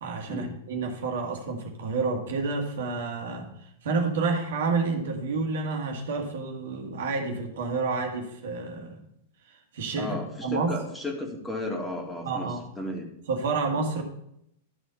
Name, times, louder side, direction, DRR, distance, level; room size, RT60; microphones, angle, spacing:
voice 1, 0.0-3.5 3.8-9.0 9.7-10.2 10.4-10.7 12.2-12.6 13.3-14.0, right 4 dB, 70° right, 3 dB, 1.7 m, -29 dB
voice 2, 10.0-13.1, left 1 dB, 10° left, 1 dB, 2.1 m, -34 dB
12.0 x 4.3 x 5.3 m, 0.75 s
hypercardioid pair, 110°, 0 cm